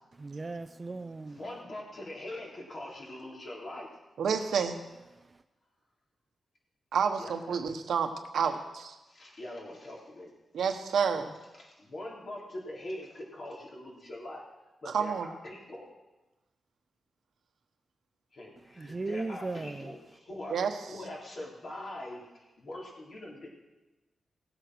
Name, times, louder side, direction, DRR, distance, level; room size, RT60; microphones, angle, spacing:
voice 1, 0.1-1.4 18.7-19.9, right 3 dB, 25° right, 0.5 m, -37 dB
voice 2, 1.3-3.9 7.2-7.6 8.4-8.5 9.1-10.3 11.6-14.4 14.8-15.9 18.3-23.5, left 1 dB, 50° left, 3.8 m, -43 dB
voice 3, 4.2-4.7 6.9-8.5 10.5-11.3 14.9-15.3 20.5-20.7, right 6 dB, 85° right, 1.2 m, -29 dB
17.0 x 8.2 x 6.3 m
wide cardioid pair, 120°, 0 cm